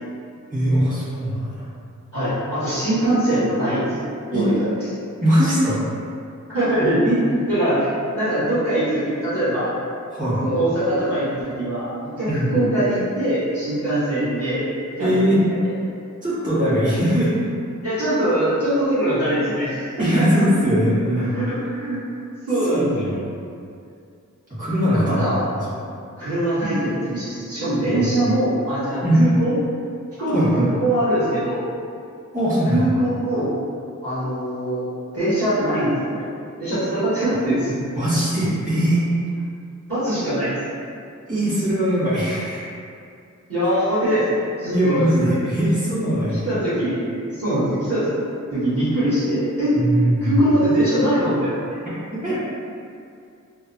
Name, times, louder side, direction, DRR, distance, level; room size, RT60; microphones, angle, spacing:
voice 1, 0.5-1.6 4.3-4.5 5.2-5.8 7.0-7.2 10.1-10.4 12.3-12.5 15.0-15.4 16.2-17.3 20.0-21.3 22.7-23.2 24.6-25.2 25.5-25.6 26.7-26.8 27.9-28.2 29.0-29.2 30.3-30.6 32.3-32.8 37.9-39.0 41.3-42.6 44.7-46.5 49.7-50.3 52.1-52.4, equal, 25° right, -14 dB, 1.5 m, -20 dB
voice 2, 2.1-4.7 6.5-7.1 7.3-9.7 10.4-14.6 15.0-15.6 17.8-20.3 21.2-22.0 22.5-23.1 24.9-25.4 26.2-29.5 30.2-31.6 32.7-33.5 34.0-34.9 35.1-36.3 36.6-37.8 39.9-40.6 43.5-45.3 46.4-48.1 48.5-49.8 50.2-51.8, right 1 dB, 45° right, -15 dB, 1.4 m, -22 dB
3.3 x 2.0 x 2.6 m, 2.4 s
wide cardioid pair, 80°, 32 cm